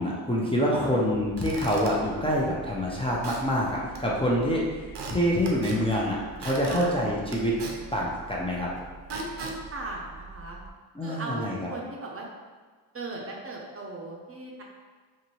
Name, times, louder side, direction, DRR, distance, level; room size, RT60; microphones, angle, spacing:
voice 1, 0.0-7.5 7.9-8.7 11.0-11.7, equal, 15° left, -5 dB, 0.5 m, -26 dB
Squeak / Wood, 1.1-10.7, right 4 dB, 75° right, 0.6 m, -41 dB
voice 2, 6.7-7.0 9.1-10.6 11.0-12.2 12.9-14.6, right 2 dB, 35° right, -2 dB, 0.6 m, -37 dB
2.6 x 2.6 x 2.9 m, 1.4 s
cardioid pair, 55°, 41 cm